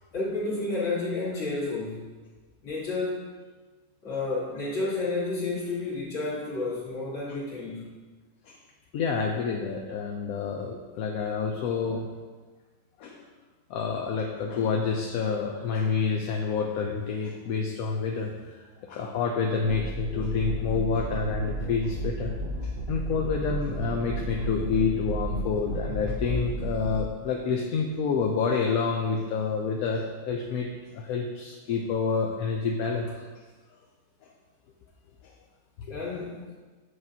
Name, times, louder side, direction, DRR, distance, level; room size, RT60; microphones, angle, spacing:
voice 1, 0.1-2.1 2.6-3.3 4.0-7.9 35.9-36.4, left 3 dB, 55° left, -7 dB, 2.0 m, -31 dB
voice 2, 8.9-12.1 13.0-13.3 13.7-22.3 22.6-33.3 35.2-35.3 35.9-36.0, left 5 dB, 80° left, 1 dB, 1.0 m, -28 dB
sound 1, 19.6-27.0, right 2 dB, 50° right, 0.6 m, -33 dB
7.4 x 4.9 x 2.7 m, 1.3 s
omnidirectional pair, 1.5 m